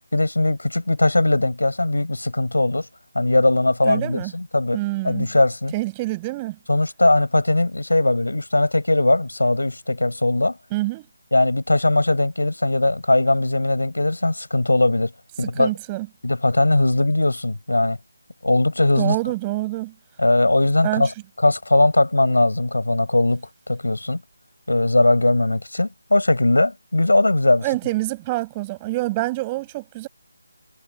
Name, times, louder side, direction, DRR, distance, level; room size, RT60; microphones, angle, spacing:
voice 1, 0.1-2.9 3.1-4.8 5.0-5.7 6.7-10.6 11.3-15.1 15.4-15.7 16.2-18.0 18.4-19.2 20.2-21.1 21.4-24.2 24.7-27.7, left 2 dB, 70° left, 7.2 m, -19 dB
voice 2, 3.8-4.3 4.7-5.3 5.7-6.6 10.7-11.1 15.5-16.1 19.0-19.9 20.8-21.1 27.6-30.1, right 20 dB, 15° right, 6.5 m, -26 dB
figure-of-eight pair, 155°, 0 cm